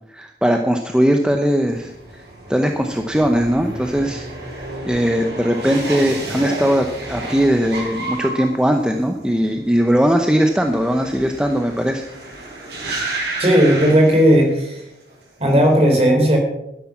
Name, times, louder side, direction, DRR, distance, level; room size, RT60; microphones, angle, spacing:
voice 1, 0.1-2.2 2.5-4.3 4.8-12.1, equal, 5° right, 4 dB, 0.7 m, -19 dB
sound 1, 1.7-14.8 15.1-15.7, right 2 dB, 75° right, 5.1 m, -31 dB
voice 2, 13.4-14.8 15.4-16.4, equal, 35° right, 2 dB, 3.8 m, -14 dB
12.5 x 10.5 x 5.9 m, 0.84 s
head